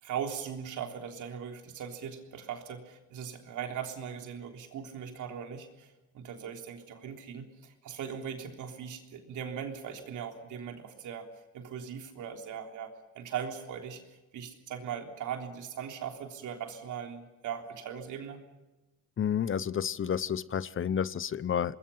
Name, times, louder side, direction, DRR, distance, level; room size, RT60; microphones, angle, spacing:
voice 1, 0.0-11.3 11.5-14.0 14.3-18.4, right 8 dB, 80° right, 4 dB, 3.6 m, -39 dB
voice 2, 19.2-21.8, left 8 dB, 45° left, 18 dB, 0.8 m, -30 dB
26.0 x 21.0 x 5.6 m, 1.1 s
cardioid pair, 90°, 30 cm